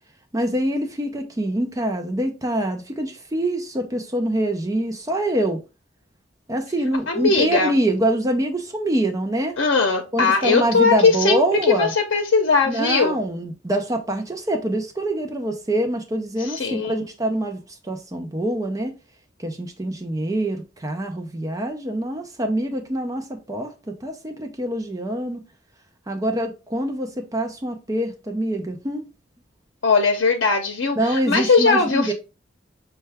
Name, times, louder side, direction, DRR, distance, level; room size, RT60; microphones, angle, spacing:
voice 1, 0.3-5.6 6.5-9.6 10.1-11.9 12.7-18.9 19.4-25.4 26.1-29.1 31.0-32.1, right 1 dB, 20° right, 0.5 m, -25 dB
voice 2, 7.1-7.7 9.6-13.2 16.4-17.1 29.8-32.1, left 4 dB, 85° left, 0.6 m, -19 dB
5.5 x 2.3 x 3.3 m
head